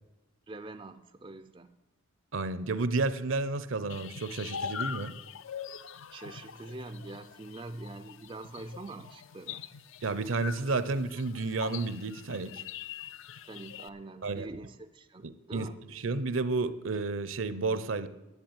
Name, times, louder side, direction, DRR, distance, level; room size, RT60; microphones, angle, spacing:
voice 1, 0.5-1.8 6.1-9.7 13.4-15.8, right 2 dB, 25° right, 10 dB, 0.4 m, -44 dB
voice 2, 2.3-5.2 10.0-12.6 14.2-14.5 15.2-18.1, right 3 dB, 65° right, 14 dB, 0.7 m, -31 dB
sound 1, 3.9-13.9, left 7 dB, 65° left, 0.5 m, -43 dB
10.5 x 8.1 x 8.8 m, 1.0 s
head